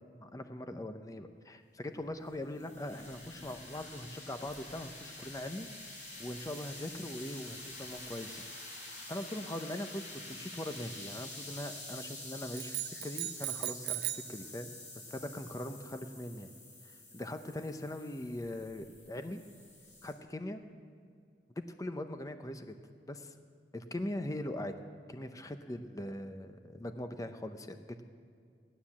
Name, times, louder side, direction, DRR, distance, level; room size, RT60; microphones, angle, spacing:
voice 1, 0.2-5.7 6.2-8.4 9.1-14.7 15.1-16.5 17.1-19.4 20.0-20.6 21.8-22.8 23.1-23.3 23.7-24.7 25.1-28.0, left 1 dB, 20° left, 8 dB, 0.7 m, -41 dB
sound 1, 1.9-20.1, left 2 dB, 45° left, 5.0 m, -48 dB
sound 2, 12.5-14.4, right 17 dB, 60° right, 0.6 m, -37 dB
17.0 x 11.5 x 7.2 m, 2.3 s
head